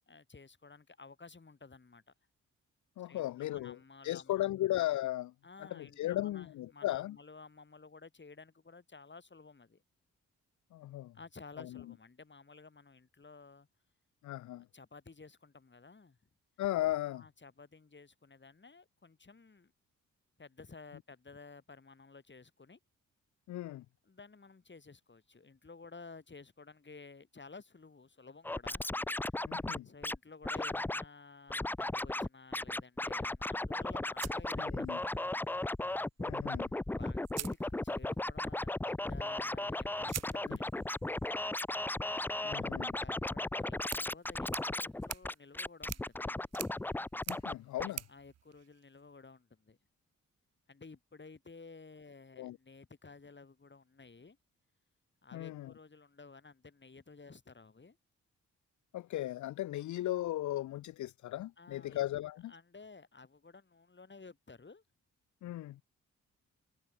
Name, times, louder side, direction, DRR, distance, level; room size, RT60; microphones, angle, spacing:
voice 1, 0.1-2.1 3.0-4.5 5.4-9.8 11.1-13.7 14.6-16.2 17.2-19.7 20.4-22.8 24.0-28.8 29.2-29.4 29.8-35.1 37.0-40.9 43.0-46.5 47.7-49.8 50.7-54.4 55.2-58.0 61.6-62.0 62.5-64.8, left 4 dB, 35° left, 6.9 m, -54 dB
voice 2, 3.0-3.8 4.0-5.3 5.6-7.2 10.7-11.2 11.6-11.8 14.2-14.7 16.6-17.2 23.5-23.9 29.4-29.9 34.6-35.0 36.2-36.7 40.5-40.6 42.4-43.0 47.3-48.0 52.4-52.6 55.3-55.7 58.9-62.5 65.4-65.8, left 14 dB, 65° left, 0.5 m, -36 dB
Scratching (performance technique), 28.4-30.2 30.4-31.0 31.5-32.3 32.5-47.5 47.8-47.9, left 2 dB, 5° left, 0.4 m, -36 dB
sound 1, 34.2-35.3 36.6-36.7 37.2-38.3 40.1-49.3, right 11 dB, 55° right, 0.5 m, -48 dB
cardioid pair, 60°, 31 cm